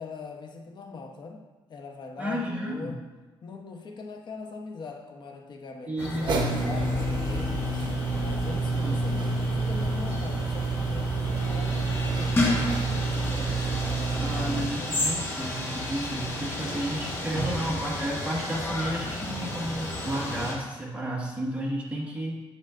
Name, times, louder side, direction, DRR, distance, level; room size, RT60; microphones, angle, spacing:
voice 1, 0.0-3.1 3.4-15.0, left 4 dB, 55° left, 2 dB, 1.0 m, -42 dB
voice 2, 2.2-2.9 5.9-6.7 8.8-9.0 14.2-22.4, right 1 dB, 15° right, -4 dB, 1.7 m, -32 dB
sound 1, 6.0-20.5, left 1 dB, 25° left, 1.5 m, -32 dB
sound 2, 6.3-14.7, right 3 dB, 55° right, 0.9 m, -28 dB
8.6 x 6.9 x 2.6 m, 1.2 s
cardioid pair, 130°, 9 cm